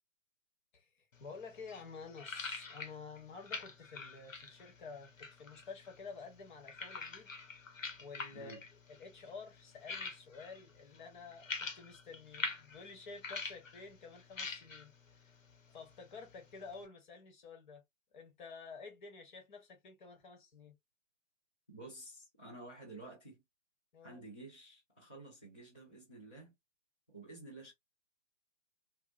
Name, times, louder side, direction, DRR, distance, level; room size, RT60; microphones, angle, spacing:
voice 1, 0.7-7.3 8.0-8.6 8.9-15.4 15.7-17.8 18.1-20.8 23.9-24.2, left 4 dB, 35° left, 1.1 m, -51 dB
sound 1, 1.1-16.9, left 4 dB, 75° left, 0.9 m, -47 dB
voice 2, 21.7-23.4 24.0-26.5 27.1-27.7, right 2 dB, 10° left, 0.4 m, -51 dB
2.8 x 2.2 x 2.3 m
figure-of-eight pair, 130°, 39 cm